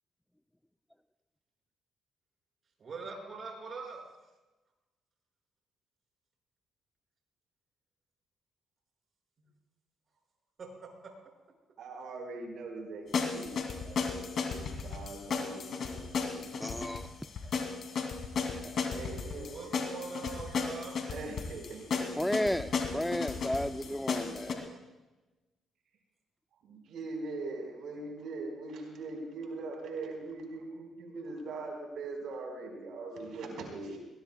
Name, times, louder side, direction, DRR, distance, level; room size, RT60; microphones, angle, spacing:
voice 1, 2.8-4.0 9.4-9.5 10.6-10.9 19.5-21.0, right 4 dB, 45° right, 0 dB, 5.6 m, -42 dB
voice 2, 11.8-14.3 14.8-16.7 18.2-18.3 18.9-19.7 21.1-22.6 22.9-24.0 24.7-24.8 26.6-34.0, right 3 dB, 75° right, 1 dB, 4.3 m, -42 dB
sound 1, 13.1-24.5, left 5 dB, 60° left, 2.5 m, -34 dB
voice 3, 16.6-17.0 18.5-18.6 22.2-24.7, left 1 dB, 5° left, 11 dB, 0.4 m, -33 dB
22.0 x 19.5 x 2.2 m, 1.1 s
cardioid pair, 90°, 0 cm